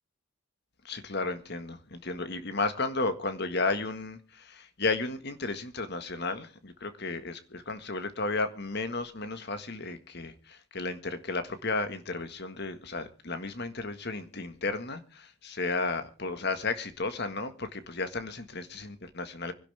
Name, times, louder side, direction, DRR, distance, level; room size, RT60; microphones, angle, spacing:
voice 1, 0.8-19.5, left 3 dB, 50° left, 1.7 m, -33 dB
25.0 x 11.5 x 3.5 m
head